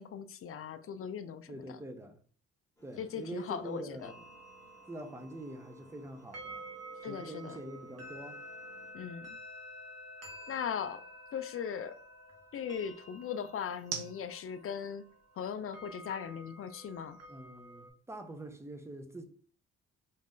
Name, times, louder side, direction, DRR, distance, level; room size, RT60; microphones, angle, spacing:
voice 1, 0.0-1.8 3.0-4.1 7.0-7.6 8.9-9.4 10.5-11.0 11.3-12.0 12.5-15.1 15.4-17.2, left 7 dB, 45° left, 0.4 m, -39 dB
voice 2, 1.5-2.2 2.8-4.1 4.9-6.7 7.1-8.4 17.3-19.2, right 1 dB, 10° right, 0.6 m, -44 dB
sound 1, 2.8-8.9, left 1 dB, 10° left, 1.3 m, -62 dB
sound 2, 4.0-17.9, right 1 dB, 55° right, 1.3 m, -50 dB
sound 3, 4.1-18.3, right 7 dB, 85° right, 0.7 m, -53 dB
4.2 x 2.4 x 3.7 m
cardioid pair, 90°, 30 cm